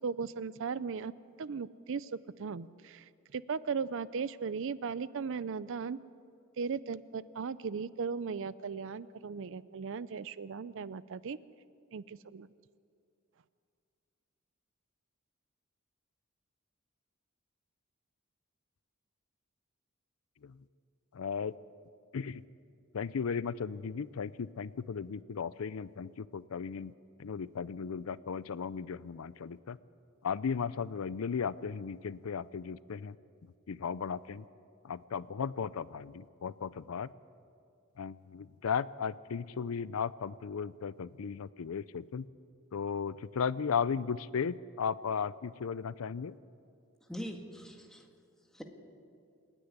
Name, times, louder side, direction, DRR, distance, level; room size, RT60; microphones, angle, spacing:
voice 1, 0.0-1.1 1.4-2.1 2.4-6.0 6.6-11.4 11.9-12.5, right 5 dB, 65° right, 17 dB, 0.5 m, -37 dB
voice 2, 21.2-21.5 22.1-22.4 22.9-26.9 27.2-29.8 30.2-33.1 33.7-34.4 34.9-37.1 38.0-42.3 42.7-46.3, left 6 dB, 85° left, 18 dB, 0.5 m, -35 dB
voice 3, 47.0-48.1 48.5-48.6, equal, 5° left, 2 dB, 1.8 m, -42 dB
27.5 x 10.0 x 9.6 m, 2.4 s
head